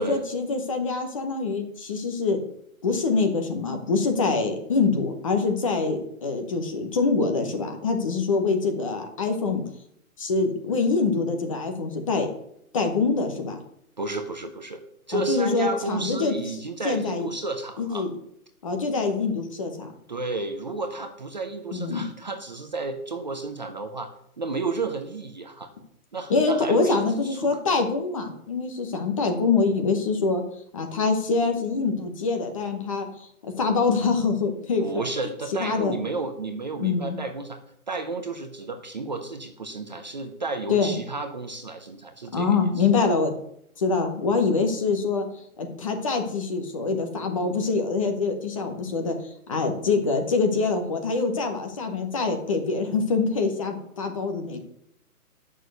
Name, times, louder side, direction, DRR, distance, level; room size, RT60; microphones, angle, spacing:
voice 1, 0.0-2.4 2.8-9.6 10.2-12.3 12.7-13.6 15.1-16.3 16.8-17.3 17.8-18.1 18.6-19.9 21.7-22.0 26.3-30.4 30.7-33.1 33.4-35.0 35.6-36.0 36.8-37.2 40.7-40.9 42.3-43.3 43.8-45.3 45.6-49.2 49.5-54.6, left 4 dB, 20° left, 5 dB, 0.9 m, -25 dB
voice 2, 14.0-14.8 15.1-18.1 20.1-24.1 24.4-25.7 26.1-27.6 34.8-37.6 37.9-42.8, right 3 dB, 30° right, 6 dB, 0.6 m, -32 dB
7.3 x 6.3 x 7.9 m, 0.71 s
hypercardioid pair, 165°, 44 cm